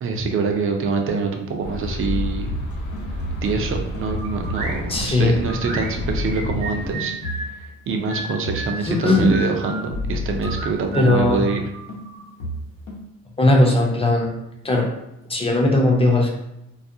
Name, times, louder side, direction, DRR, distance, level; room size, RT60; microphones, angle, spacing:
voice 1, 0.0-2.6 3.4-11.6, right 4 dB, 45° right, 3 dB, 0.5 m, -25 dB
sound 1, 1.6-7.0, left 1 dB, 65° left, 0.9 m, -31 dB
sound 2, 2.0-7.7 7.9-11.6 11.9-13.0, left 1 dB, 90° left, 0.8 m, -31 dB
sound 3, 4.0-4.8 5.4-7.5 8.1-9.9 10.4-12.3, right 2 dB, 75° right, 0.8 m, -33 dB
voice 2, 4.9-5.4 8.8-9.3 10.9-11.4 13.4-14.3 14.6-14.9 15.3-16.3, left 2 dB, 20° left, 0 dB, 0.6 m, -18 dB
2.4 x 2.0 x 2.6 m, 0.86 s
cardioid pair, 90°, 30 cm